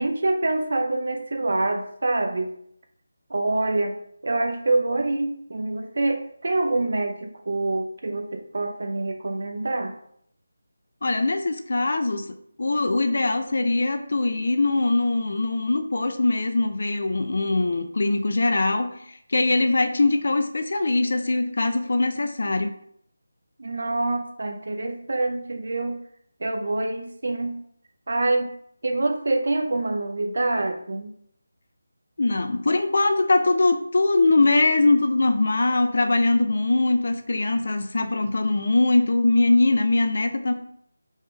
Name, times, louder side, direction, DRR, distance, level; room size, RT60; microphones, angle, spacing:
voice 1, 0.0-2.5 3.3-4.0 4.2-9.9 23.6-26.0 26.4-27.6 28.1-28.5 28.8-31.1, right 2 dB, 65° right, 5 dB, 0.8 m, -26 dB
voice 2, 11.0-12.3 12.6-22.7 32.2-40.5, left 2 dB, 60° left, 8 dB, 0.6 m, -22 dB
5.3 x 3.7 x 4.8 m, 0.69 s
figure-of-eight pair, 165°, 0 cm